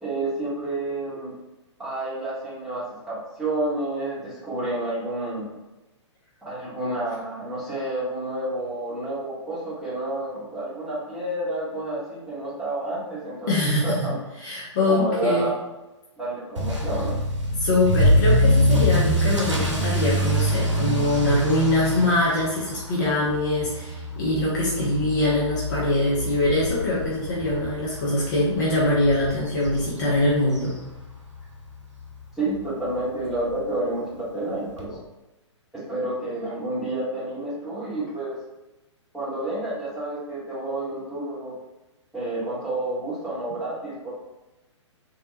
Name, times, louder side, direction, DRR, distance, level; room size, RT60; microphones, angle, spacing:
voice 1, 0.0-1.3 1.8-5.5 6.4-14.1 14.9-15.5 16.2-17.1 32.4-35.0 35.7-38.4 39.1-41.5 42.1-44.1, right 1 dB, ahead, -12 dB, 1.4 m, -29 dB
voice 2, 13.5-14.1 14.4-15.5 17.6-30.7, left 1 dB, 35° left, -6 dB, 0.8 m, -23 dB
Motor vehicle (road) / Accelerating revving vroom, 16.6-31.4 31.7-32.1 32.6-32.7 33.0-33.1 33.4-33.5 34.8-34.9, equal, 75° right, 0.9 m, -25 dB
3.2 x 2.7 x 2.7 m, 1.0 s
figure-of-eight pair, 120°, 16 cm